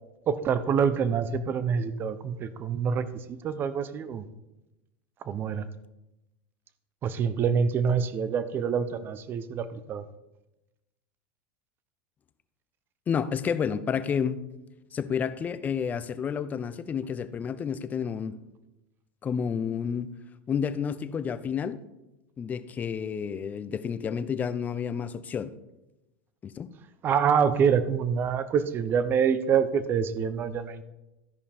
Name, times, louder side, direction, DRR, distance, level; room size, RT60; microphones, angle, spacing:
voice 1, 0.3-4.2 5.2-5.7 7.0-10.0 27.0-30.8, right 7 dB, 35° right, 14 dB, 0.7 m, -26 dB
voice 2, 13.1-14.4 14.9-18.4 19.2-20.1 20.5-21.8 22.4-25.5 26.4-26.7, left 7 dB, 25° left, 14 dB, 0.6 m, -30 dB
13.0 x 5.2 x 4.3 m, 0.96 s
supercardioid pair, 120°, 6 cm